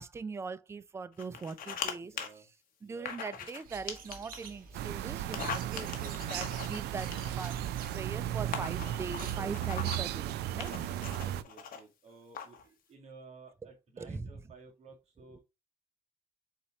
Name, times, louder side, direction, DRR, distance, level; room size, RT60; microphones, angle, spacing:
voice 1, 0.0-2.1 2.8-10.3 10.5-10.8 14.0-14.3 15.3-15.4, right 5 dB, 15° right, 0.4 m, -41 dB
sound 1, 1.2-1.9 2.2-2.3 3.1-3.6 3.9-4.5 5.2-7.6 8.2-8.3 8.5-10.1 10.6-11.8 12.3-12.6, left 7 dB, 55° left, 1.1 m, -40 dB
voice 2, 2.0-2.5 2.8-3.1 5.7-6.0 10.2-15.4, right 4 dB, 40° right, 1.6 m, -55 dB
sound 2, 3.6-9.9, right 4 dB, 55° right, 1.4 m, -47 dB
sound 3, 4.7-11.4, right 12 dB, 75° right, 0.4 m, -35 dB
4.2 x 4.1 x 2.8 m
cardioid pair, 110°, 17 cm